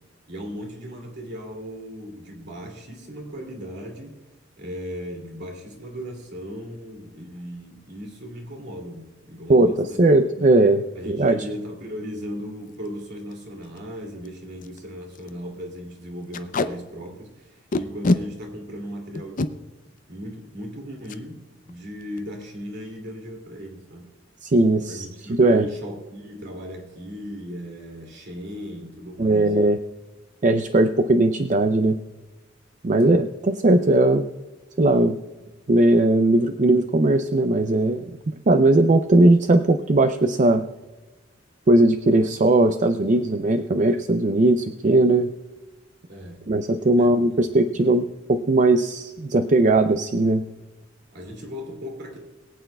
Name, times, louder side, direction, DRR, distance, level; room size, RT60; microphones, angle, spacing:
voice 1, 0.3-4.2 4.6-9.8 10.3-10.4 11.0-19.4 20.1-24.1 24.9-29.5 33.0-33.2 46.1-46.4 46.9-48.0 51.1-52.2, equal, 60° right, 2.5 m, -37 dB
voice 2, 9.5-11.4 24.4-25.0 25.3-25.7 29.2-29.8 30.4-32.0 32.8-34.3 34.8-35.2 35.7-38.1 38.5-40.6 41.7-45.3 46.5-50.4, right 2 dB, 40° right, 0.5 m, -18 dB
Packing tape duct tape, 12.7-12.9 13.3-13.4 13.6-13.8 14.3-14.4 14.6-14.8 15.1-15.3 16.3-16.7 17.7-18.2 19.2-19.5 21.0-21.2 21.6-21.8 22.0-22.4, left 2 dB, 45° left, 0.6 m, -24 dB
22.5 x 8.8 x 2.3 m
head